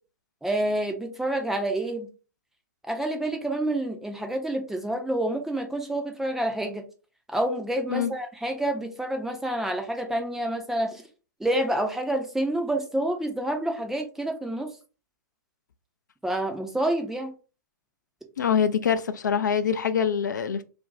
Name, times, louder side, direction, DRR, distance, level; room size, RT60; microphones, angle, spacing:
voice 1, 0.4-2.1 2.8-6.8 7.3-11.0 11.4-14.7 16.2-17.3, right 1 dB, 5° right, 0.5 m, -28 dB
voice 2, 18.4-20.6, left 7 dB, 70° left, 0.4 m, -24 dB
2.5 x 2.2 x 3.9 m
figure-of-eight pair, 110°, 10 cm